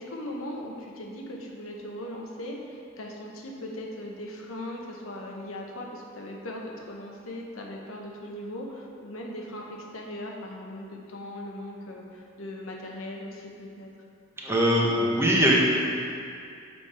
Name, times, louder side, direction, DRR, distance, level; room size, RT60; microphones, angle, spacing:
voice 1, 0.0-13.9, left 1 dB, 90° left, -1 dB, 1.0 m, -39 dB
voice 2, 14.4-15.5, equal, 15° right, -4 dB, 1.0 m, -22 dB
7.0 x 5.4 x 4.3 m, 2.4 s
head